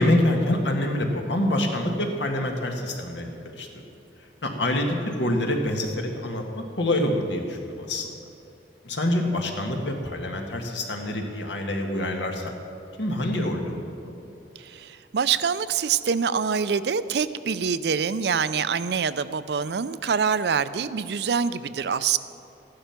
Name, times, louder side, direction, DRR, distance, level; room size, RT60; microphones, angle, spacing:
voice 1, 0.0-3.8 4.4-8.2 8.8-12.5 13.0-14.1, left 1 dB, 75° left, 2 dB, 1.7 m, -26 dB
voice 2, 14.6-22.2, right 6 dB, 65° right, 14 dB, 0.4 m, -25 dB
14.5 x 11.5 x 5.9 m, 2.7 s
head